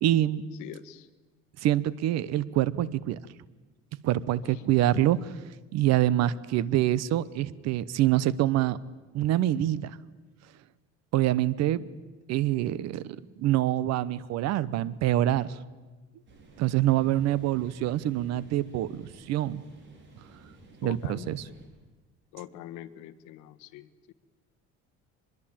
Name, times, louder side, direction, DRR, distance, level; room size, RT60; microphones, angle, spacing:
voice 1, 0.0-0.4 1.6-3.2 4.0-5.3 5.7-8.8 9.1-10.0 11.1-11.9 12.3-15.6 16.6-19.6 20.8-21.4, right 13 dB, 60° right, 19 dB, 1.0 m, -26 dB
voice 2, 0.6-1.1 4.4-4.5 20.8-21.5 22.3-24.1, left 12 dB, 80° left, 12 dB, 1.4 m, -43 dB
sound 1, 16.3-21.7, right 2 dB, 40° right, 4.8 m, -53 dB
24.0 x 22.0 x 8.9 m, 1.3 s
cardioid pair, 160°, 30 cm